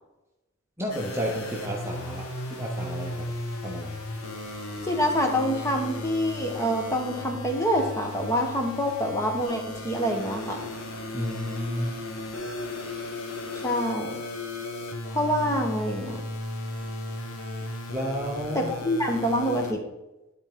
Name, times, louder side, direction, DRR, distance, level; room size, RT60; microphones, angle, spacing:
voice 1, 0.8-3.3 3.6-4.0 11.1-11.9 17.9-18.7, equal, 10° right, -2 dB, 0.7 m, -32 dB
sound 1, 0.9-19.7, left 1 dB, 90° left, 1.0 m, -35 dB
voice 2, 4.8-10.6 13.6-14.2 15.1-16.2 18.5-19.8, equal, 15° left, 2 dB, 1.0 m, -26 dB
11.5 x 4.3 x 3.6 m, 0.99 s
head